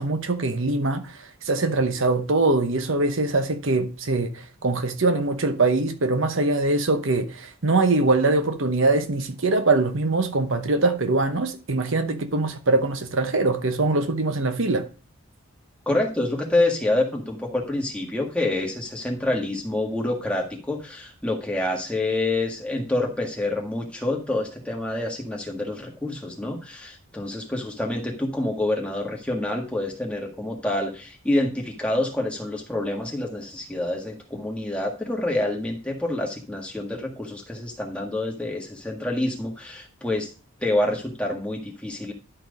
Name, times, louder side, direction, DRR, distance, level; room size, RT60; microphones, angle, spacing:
voice 1, 0.0-14.8, right 2 dB, 65° right, 1.0 m, -23 dB
voice 2, 15.8-40.3 40.6-42.1, left 1 dB, 5° left, 1.7 m, -27 dB
11.5 x 4.5 x 5.2 m
head